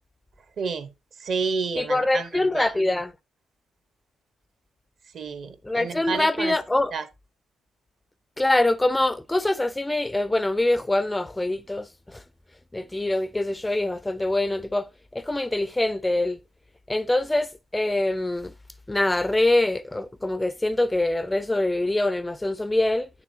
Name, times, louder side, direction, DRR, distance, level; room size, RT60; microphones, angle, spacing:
voice 1, 0.6-0.9 1.2-2.3 2.5-2.7 5.1-6.5 6.9-7.0, right 5 dB, 60° right, 1.1 m, -30 dB
voice 2, 1.8-3.1 5.6-6.9 8.4-12.2 12.7-16.4 16.9-18.5 18.9-23.1, left 2 dB, 10° left, 0.4 m, -24 dB
8.9 x 6.9 x 2.8 m
cardioid pair, 90°, 0 cm